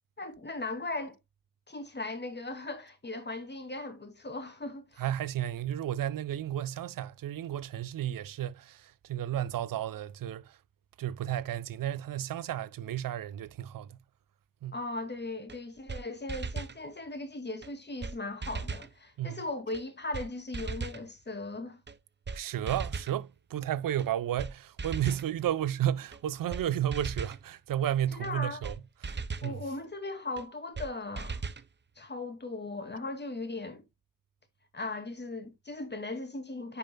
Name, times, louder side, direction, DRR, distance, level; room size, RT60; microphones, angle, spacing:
voice 1, 0.2-1.2 1.7-5.0 14.7-21.8 28.1-28.6 29.4-31.4 32.0-33.8 34.7-36.8, left 2 dB, 30° left, 2.4 m, -38 dB
voice 2, 5.0-10.6 11.0-14.0 14.6-14.8 19.2-19.4 22.3-28.7 29.0-29.6, right 11 dB, 65° right, 0.8 m, -33 dB
sound 1, 15.5-15.6 15.9-16.0 16.3-16.8 17.6-17.7 18.0-18.2 18.4-18.9 19.7-19.8 20.1-20.3 20.5-21.0 21.9-22.0 22.3-22.4 22.7-23.2 24.0-24.1 24.4-24.5 24.8-25.3 26.1-26.2 26.5-26.6 26.9-27.4 28.2-28.3 28.6-28.8 29.0-29.5 30.4-30.5 30.8-30.9 31.2-31.7, right 4 dB, 30° right, 0.9 m, -37 dB
9.7 x 5.5 x 2.2 m
supercardioid pair, 60°, 35 cm